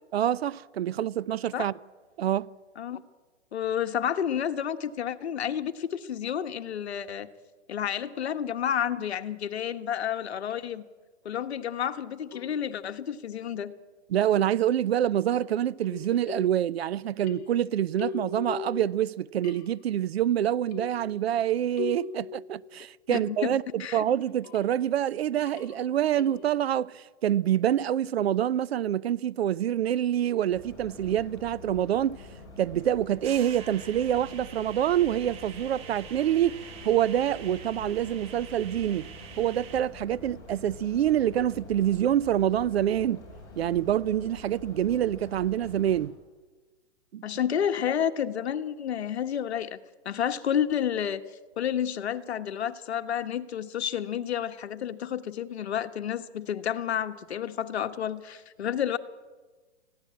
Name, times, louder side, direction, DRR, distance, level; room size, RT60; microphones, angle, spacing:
voice 1, 0.1-1.7 2.2-2.5 14.1-32.2 32.6-36.6 36.8-39.1 39.4-43.2 43.6-46.1 47.1-47.3, right 11 dB, 60° right, 0.6 m, -26 dB
voice 2, 3.5-7.3 7.7-10.8 11.2-13.7 23.1-24.0 47.2-49.8 50.0-51.2 51.6-59.0, left 9 dB, 65° left, 1.4 m, -30 dB
sound 1, 10.5-10.6 12.3-12.9 14.2-14.8 15.3-16.9 17.2-19.1 19.4-20.0 20.7-23.7 24.2-24.8 25.5-26.6, left 6 dB, 35° left, 1.1 m, -41 dB
sound 2, 30.5-46.1, left 3 dB, 10° left, 5.4 m, -46 dB
sound 3, 33.2-39.8, right 7 dB, 15° right, 1.0 m, -46 dB
21.0 x 15.5 x 8.7 m
hypercardioid pair, 155°, 35 cm